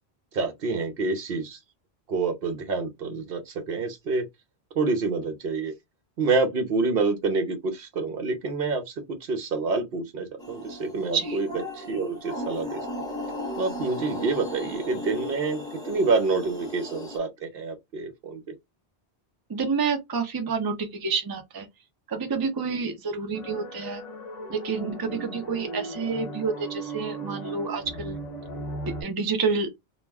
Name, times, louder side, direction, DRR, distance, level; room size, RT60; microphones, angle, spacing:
voice 1, 0.3-1.6 2.1-4.2 4.8-5.7 6.2-11.5 11.7-12.8 13.6-18.4, right 3 dB, 65° right, 0.8 m, -27 dB
sound 1, 10.4-17.2, left 1 dB, 5° left, 0.9 m, -36 dB
voice 2, 19.5-21.7 22.1-24.0 24.5-28.2 29.0-29.7, right 5 dB, 30° right, 0.4 m, -28 dB
sound 2, 23.3-29.0, right 2 dB, 45° left, 0.7 m, -37 dB
2.3 x 2.1 x 3.3 m
omnidirectional pair, 1.1 m